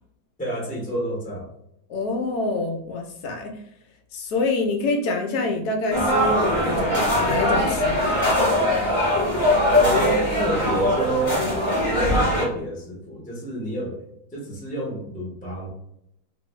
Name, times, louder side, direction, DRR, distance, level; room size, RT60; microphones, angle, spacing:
voice 1, 0.4-1.5 9.8-11.5 11.9-14.0 14.3-15.7, right 1 dB, 5° left, -3 dB, 0.6 m, -29 dB
voice 2, 1.9-3.6 4.1-8.5, left 2 dB, 70° left, 3 dB, 1.0 m, -26 dB
sound 1, 5.9-12.5, left 1 dB, 25° left, 1.2 m, -21 dB
3.0 x 2.6 x 3.1 m, 0.75 s
omnidirectional pair, 2.1 m